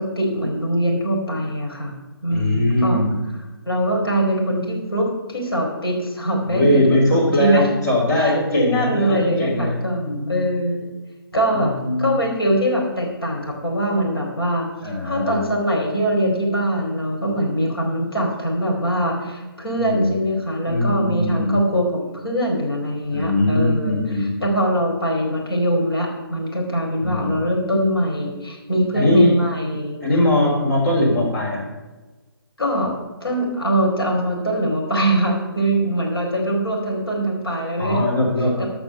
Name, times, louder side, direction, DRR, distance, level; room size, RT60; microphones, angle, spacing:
voice 1, 0.0-2.0 2.2-3.0 3.7-6.9 7.1-7.7 8.2-10.9 11.3-30.0 32.6-32.9 33.2-38.1 38.6-38.7, right 1 dB, 70° left, -1 dB, 4.3 m, -22 dB
voice 2, 2.3-3.1 6.5-10.5 11.5-12.2 14.8-15.4 19.8-20.2 20.7-21.6 23.1-24.3 27.0-27.3 28.9-29.4 30.0-31.6 37.8-38.7, left 1 dB, 45° left, -3 dB, 3.9 m, -20 dB
13.5 x 6.0 x 6.7 m, 1.2 s
figure-of-eight pair, 135°, 13 cm